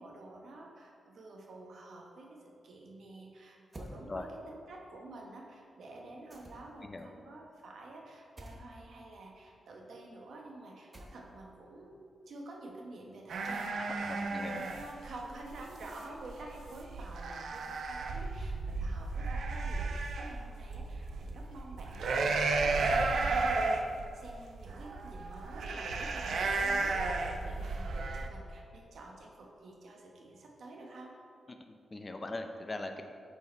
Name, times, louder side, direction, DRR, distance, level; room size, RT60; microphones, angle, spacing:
voice 1, 0.0-23.7 24.1-31.1, right 2 dB, 60° right, 0 dB, 1.1 m, -49 dB
sound 1, 3.7-4.0 6.3-6.8 8.4-8.6 10.9-11.5, equal, 20° right, 0.9 m, -48 dB
sound 2, 13.3-28.3, right 3 dB, 80° right, 0.5 m, -33 dB
voice 2, 14.0-14.6 31.5-33.0, left 2 dB, 20° left, 5 dB, 0.4 m, -41 dB
8.2 x 4.7 x 4.4 m, 2.3 s
wide cardioid pair, 150°, 0 cm